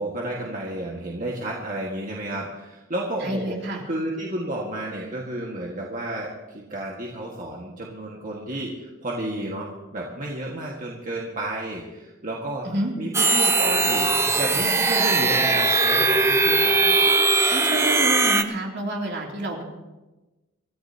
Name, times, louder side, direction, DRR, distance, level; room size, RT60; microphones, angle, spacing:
voice 1, 0.0-3.6 3.8-12.7 13.0-14.1 14.4-17.0, right 1 dB, 40° right, -2 dB, 1.8 m, -31 dB
voice 2, 3.2-3.8 12.6-12.9 17.5-19.6, right 1 dB, 60° right, -1 dB, 3.0 m, -28 dB
sound 1, 13.1-18.4, right 3 dB, 15° right, 0.6 m, -20 dB
26.0 x 14.5 x 2.9 m, 1.1 s
head